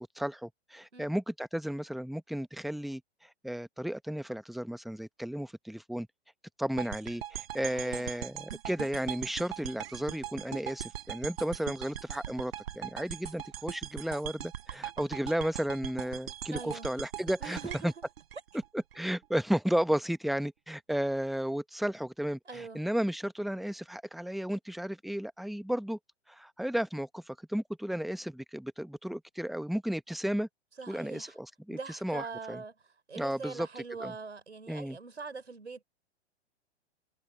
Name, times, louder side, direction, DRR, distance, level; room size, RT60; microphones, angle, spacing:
voice 1, 0.1-6.1 6.6-17.9 18.7-26.0 26.3-30.5 30.9-32.6 33.2-34.1 34.7-35.0, equal, ahead, 1.2 m, -33 dB
sound 1, 6.8-19.0, right 11 dB, 60° right, 3.9 m, -40 dB
voice 2, 7.6-8.1 16.5-16.9 17.4-17.9 22.5-22.8 30.8-31.3 31.7-32.7 33.1-35.8, right 4 dB, 85° right, 5.1 m, -42 dB
figure-of-eight pair, 110°, 34 cm